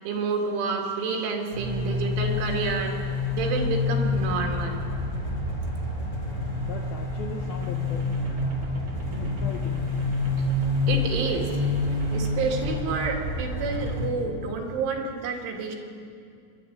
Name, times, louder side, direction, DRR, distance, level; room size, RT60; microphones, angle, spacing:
voice 1, 0.0-3.0 3.3-4.8 10.9-11.5 12.1-15.8, right 4 dB, 80° right, 2 dB, 4.5 m, -29 dB
sound 1, 1.5-14.1, left 2 dB, 10° left, 3.1 m, -28 dB
voice 2, 6.6-8.0 9.2-9.9, left 6 dB, 75° left, 2 dB, 2.2 m, -39 dB
sound 2, 7.4-12.9, right 1 dB, 45° right, 3.2 m, -41 dB
26.0 x 12.0 x 9.5 m, 2.4 s
omnidirectional pair, 5.6 m